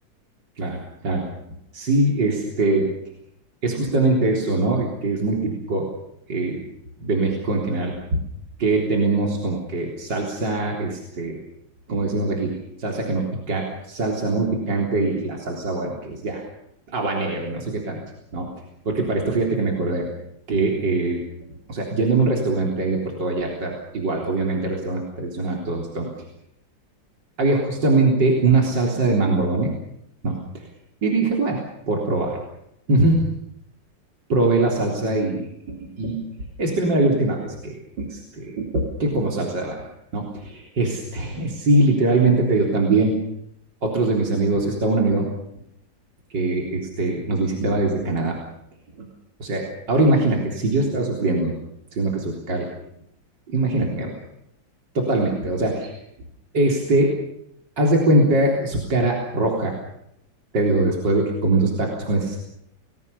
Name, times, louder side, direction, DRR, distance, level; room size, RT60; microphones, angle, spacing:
voice 1, 1.7-2.9 3.6-5.9 6.3-6.6 7.0-8.2 8.6-11.4 11.9-16.4 16.9-18.0 18.3-18.5 18.9-20.1 20.5-21.2 21.7-26.1 27.4-29.7 30.2-30.4 31.0-32.4 32.9-33.3 34.3-36.2 36.6-39.8 40.1-43.2 43.8-45.3 46.3-48.4 49.0-49.1 49.4-51.5 51.9-52.7 53.5-54.2 54.9-56.0 56.5-57.2 57.8-59.7 60.5-62.4, right 2 dB, 70° right, -1 dB, 4.4 m, -22 dB
30.0 x 21.0 x 7.0 m, 0.79 s
omnidirectional pair, 2.0 m